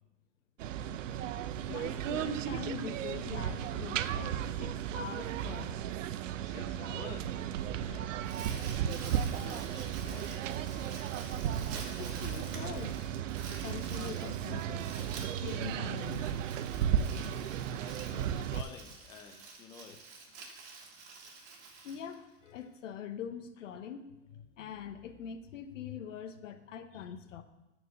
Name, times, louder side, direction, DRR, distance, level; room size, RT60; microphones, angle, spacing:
sound 1, 0.6-18.6, right 9 dB, 85° right, 0.7 m, -35 dB
voice 1, 1.5-5.8 8.6-9.1 9.4-9.7 11.9-13.1 13.6-14.9 15.2-16.3 21.8-27.4, left 8 dB, 85° left, 9 dB, 1.1 m, -44 dB
voice 2, 6.4-7.3 7.8-8.2 8.4-8.7 9.1-10.3 17.8-20.0, left 6 dB, 10° left, 4 dB, 0.5 m, -50 dB
Crumpling crinkling, 8.0-22.6, right 4 dB, 45° right, 2.3 m, -49 dB
sound 2, 10.0-11.7 12.1-17.9 18.3-18.4, right 3 dB, 25° right, 3.8 m, -58 dB
13.0 x 4.6 x 6.8 m, 1.0 s
supercardioid pair, 155°, 37 cm